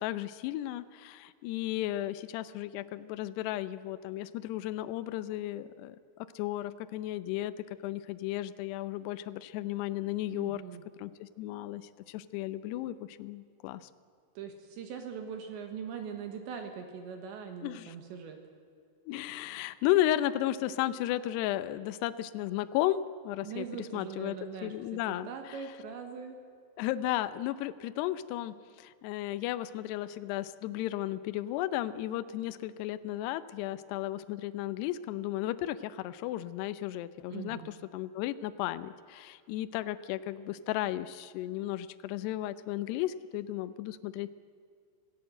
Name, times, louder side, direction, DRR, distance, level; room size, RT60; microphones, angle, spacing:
voice 1, 0.0-0.8 1.4-5.6 6.4-7.5 7.8-10.6 11.0-11.1 11.4-11.8 12.3-12.9 13.2-13.8 17.6-17.8 19.1-24.4 24.6-25.3 26.8-28.5 29.0-35.8 36.2-37.6 37.9-38.9 39.5-41.1 41.4-44.3, left 14 dB, 80° left, 12 dB, 2.4 m, -33 dB
voice 2, 10.3-10.8 14.4-18.4 23.4-26.4 37.3-37.7, right 7 dB, 70° right, 5 dB, 3.6 m, -41 dB
26.5 x 17.0 x 7.9 m, 2.3 s
omnidirectional pair, 5.6 m